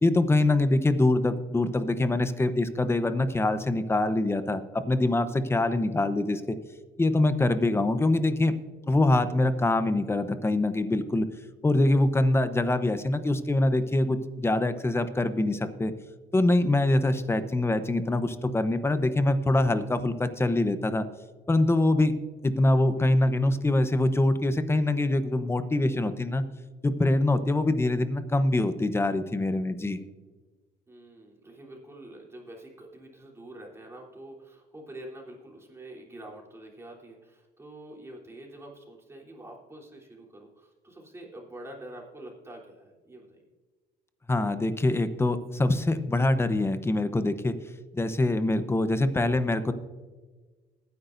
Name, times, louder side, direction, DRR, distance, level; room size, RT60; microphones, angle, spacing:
voice 1, 0.0-6.6 7.0-8.5 8.9-11.3 11.6-15.9 16.3-21.1 21.5-22.1 22.4-26.4 26.8-30.0 44.3-47.5 47.9-49.7, left 2 dB, 15° left, 11 dB, 0.9 m, -24 dB
voice 2, 30.9-43.5, right 1 dB, 15° right, -2 dB, 3.5 m, -46 dB
20.5 x 10.0 x 2.6 m, 1.3 s
cardioid pair, 110°, 17 cm